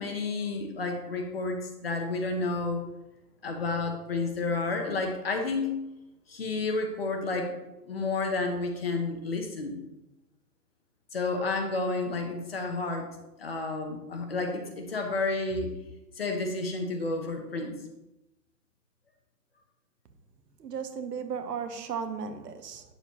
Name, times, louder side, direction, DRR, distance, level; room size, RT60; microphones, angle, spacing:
voice 1, 0.0-2.8 3.4-5.7 6.3-7.6 7.9-9.8 11.1-13.1 13.4-15.7 16.2-17.7, left 3 dB, 35° left, 4 dB, 0.9 m, -31 dB
voice 2, 20.6-22.8, right 6 dB, 70° right, 8 dB, 1.1 m, -35 dB
8.7 x 7.0 x 3.0 m, 0.96 s
hypercardioid pair, 180°, 49 cm